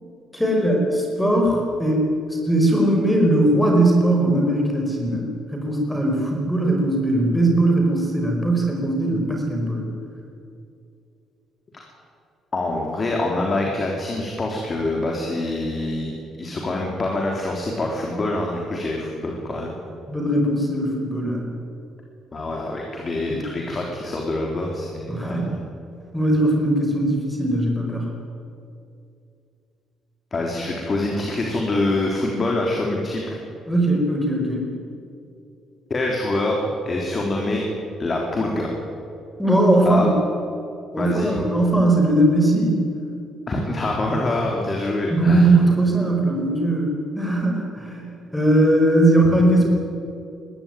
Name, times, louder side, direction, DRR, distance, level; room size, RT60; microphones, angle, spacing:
voice 1, 0.3-9.8 20.1-21.5 23.3-23.4 25.1-25.5 26.1-28.1 33.7-34.7 39.4-40.1 40.9-42.8 45.1-49.6, right 1 dB, 5° left, 1 dB, 5.0 m, -19 dB
voice 2, 12.5-19.7 22.3-25.6 30.3-33.4 35.9-37.6 38.0-38.7 39.8-40.1 41.0-41.4 43.5-45.5, left 2 dB, 30° left, 0 dB, 3.7 m, -25 dB
22.0 x 16.0 x 9.3 m, 2.5 s
cardioid pair, 110°, 0 cm